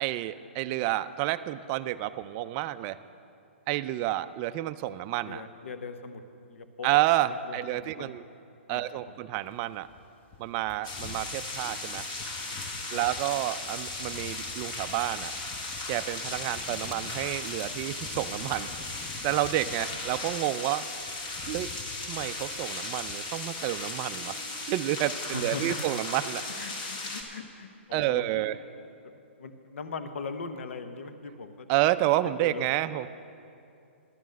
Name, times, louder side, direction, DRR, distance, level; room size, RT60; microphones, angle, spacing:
voice 1, 0.0-3.0 3.7-5.4 6.8-8.2 8.7-9.9 10.4-12.1 12.9-15.3 15.9-18.7 19.2-20.9 21.4-21.7 22.0-24.4 24.7-26.4 27.9-28.6 31.7-33.1, right 15 dB, 30° right, 12 dB, 0.3 m, -29 dB
voice 2, 5.2-6.2 6.5-6.9 7.3-8.1 8.7-8.8 12.6-13.0 25.3-25.8 26.6-28.4 29.4-31.7 32.4-32.7, left 4 dB, 75° left, 9 dB, 0.8 m, -40 dB
sound 1, 9.5-20.4 20.8-24.2 24.4-24.7 25.0-25.8 26.1-26.3, left 5 dB, 20° left, 0.6 m, -48 dB
sound 2, 10.8-27.2, left 2 dB, 35° left, 1.9 m, -37 dB
11.5 x 9.1 x 6.4 m, 2.6 s
hypercardioid pair, 140°, 7 cm